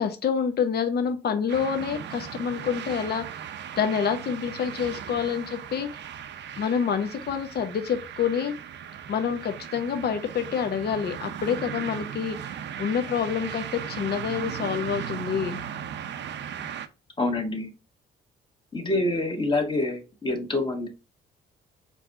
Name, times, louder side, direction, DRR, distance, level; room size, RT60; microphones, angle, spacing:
voice 1, 0.0-3.3 3.8-5.9 6.6-8.5 9.1-12.4 12.8-15.6, left 7 dB, 55° left, 6 dB, 0.9 m, -27 dB
sound 1, 1.5-16.9, right 8 dB, 65° right, 0.6 m, -37 dB
voice 2, 17.2-17.7 18.7-20.9, left 2 dB, 25° left, 3 dB, 1.4 m, -26 dB
4.7 x 3.4 x 2.6 m, 0.31 s
cardioid pair, 90°, 20 cm